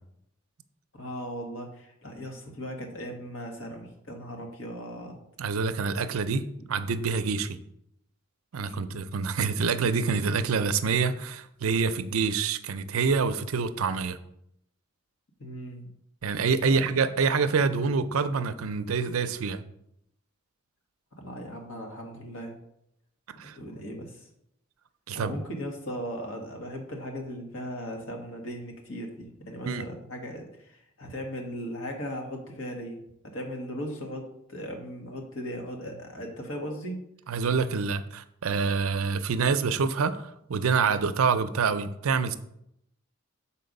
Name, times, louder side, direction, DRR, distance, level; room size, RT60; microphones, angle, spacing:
voice 1, 0.9-5.2 8.7-9.0 15.4-15.9 16.6-16.9 21.2-22.6 23.5-24.3 25.1-37.0, equal, 70° left, 2 dB, 1.6 m, -38 dB
voice 2, 5.4-6.4 6.7-7.6 8.5-14.2 16.2-19.6 23.4-23.6 25.1-25.3 29.7-29.8 37.3-42.4, right 5 dB, 90° right, 11 dB, 0.5 m, -26 dB
6.8 x 4.3 x 5.3 m, 0.77 s
head